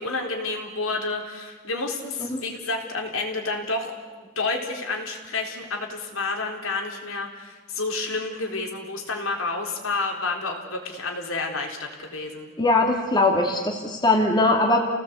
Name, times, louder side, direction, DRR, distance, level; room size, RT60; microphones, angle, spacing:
voice 1, 0.0-3.9 4.2-12.5, left 3 dB, 70° left, 2 dB, 4.1 m, -30 dB
voice 2, 12.6-14.8, left 2 dB, 20° left, 0 dB, 2.4 m, -21 dB
29.5 x 18.0 x 8.3 m, 1.4 s
head